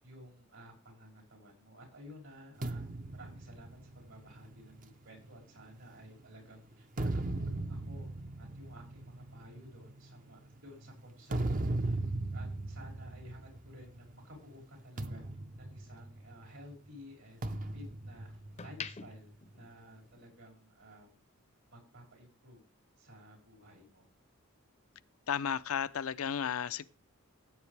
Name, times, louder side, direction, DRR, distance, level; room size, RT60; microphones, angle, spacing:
voice 1, 0.0-2.8 3.1-8.1 8.4-12.0 12.3-15.2 15.5-21.2 21.7-22.6 23.0-24.1, equal, 75° right, 5.9 m, -54 dB
sound 1, 2.6-6.2 6.7-14.1 14.4-14.6 15.0-16.6 17.4-19.2, right 2 dB, 40° right, 0.7 m, -38 dB
sound 2, 13.7-16.1 16.5-17.9 18.3-20.5 20.8-21.0, left 6 dB, 30° left, 0.6 m, -49 dB
voice 2, 25.3-26.8, left 8 dB, 85° left, 0.5 m, -33 dB
15.5 x 8.1 x 3.3 m
head